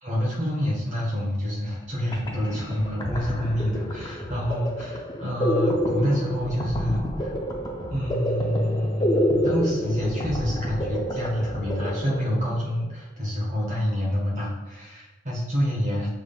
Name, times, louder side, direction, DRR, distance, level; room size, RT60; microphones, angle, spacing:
voice 1, 0.0-7.3 7.9-16.1, equal, 40° right, -3 dB, 1.5 m, -27 dB
sound 1, 1.8-12.7, equal, 20° left, 0.6 m, -28 dB
6.1 x 3.6 x 2.4 m, 1.0 s
head